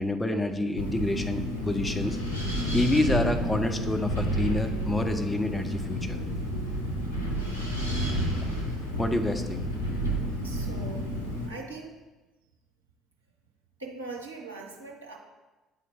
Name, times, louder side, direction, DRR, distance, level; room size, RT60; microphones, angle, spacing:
voice 1, 0.0-2.2 2.7-6.2 8.4-8.5 8.9-9.6, left 2 dB, 15° left, 7 dB, 0.6 m, -28 dB
Wind, 0.8-11.5, equal, 80° left, 0.8 m, -30 dB
voice 2, 10.4-11.1 11.4-11.9 13.8-15.2, right 3 dB, 80° right, -2 dB, 0.8 m, -41 dB
8.8 x 3.8 x 3.8 m, 1.1 s
figure-of-eight pair, 55°, 0 cm